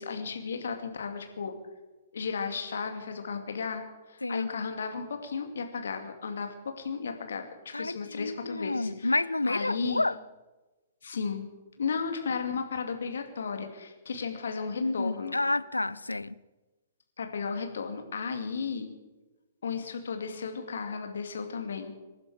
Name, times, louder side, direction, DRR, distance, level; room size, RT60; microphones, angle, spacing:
voice 1, 0.0-1.5 2.1-3.8 4.1-9.1 9.4-10.1 11.0-11.4 11.8-15.4 17.2-18.9 19.6-22.0, left 5 dB, 60° left, 2.4 m, -34 dB
voice 2, 7.7-10.1 14.7-16.3, left 2 dB, 80° left, 0.6 m, -29 dB
26.5 x 11.0 x 4.9 m
figure-of-eight pair, 115°, 0 cm